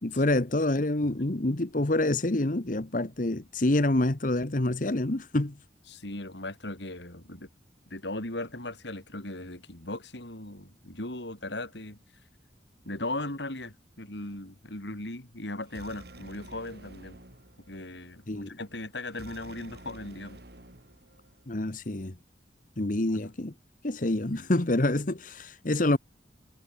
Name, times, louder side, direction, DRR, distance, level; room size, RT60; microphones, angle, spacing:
voice 1, 0.0-5.5 18.3-18.5 21.5-22.1 22.8-23.5 23.8-26.0, left 1 dB, 45° left, 1.2 m, -27 dB
voice 2, 5.9-7.5 7.9-12.0 12.8-17.2 17.7-20.4 23.1-23.3 24.3-24.5, left 2 dB, 75° left, 4.7 m, -38 dB
sound 1, 15.6-21.6, right 1 dB, 60° right, 3.5 m, -51 dB
head